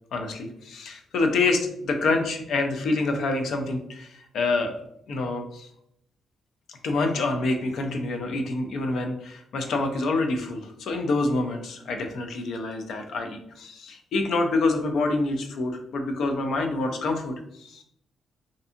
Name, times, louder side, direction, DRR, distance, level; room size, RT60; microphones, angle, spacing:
voice 1, 0.1-4.8 5.1-5.7 6.7-17.8, left 3 dB, 70° left, 4 dB, 0.4 m, -27 dB
2.6 x 2.4 x 2.5 m, 0.75 s
cardioid pair, 140°, 0 cm